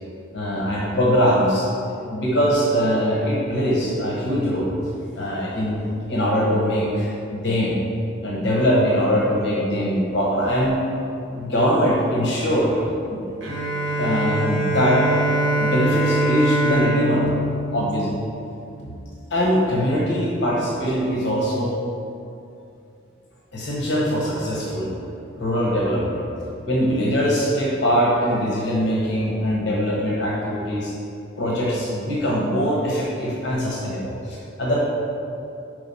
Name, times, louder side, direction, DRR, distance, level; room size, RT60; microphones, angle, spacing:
voice 1, 0.3-4.7 5.1-7.8 8.2-10.8 11.3-12.8 13.1-13.2 14.0-15.1 15.6-17.3 17.7-18.0 18.8-18.9 19.3-21.8 23.5-24.9 25.4-26.2 26.6-30.9 31.4-34.8, equal, 60° left, -4 dB, 1.1 m, -22 dB
Bowed string instrument, 13.4-18.9, right 2 dB, 70° right, 1.1 m, -23 dB
4.9 x 4.8 x 5.5 m, 2.6 s
head